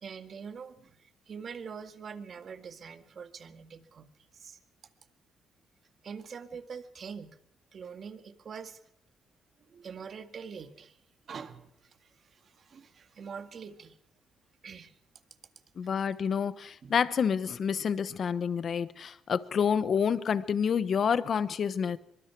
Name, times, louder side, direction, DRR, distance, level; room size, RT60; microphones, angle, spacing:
voice 1, 0.0-4.6 6.0-7.4 7.7-8.8 9.7-11.0 11.3-14.0 14.6-15.0 16.8-16.9, right 6 dB, 50° right, 1.8 m, -44 dB
voice 2, 15.8-22.0, left 7 dB, 50° left, 1.0 m, -28 dB
24.0 x 23.0 x 4.7 m
cardioid pair, 90°, 0 cm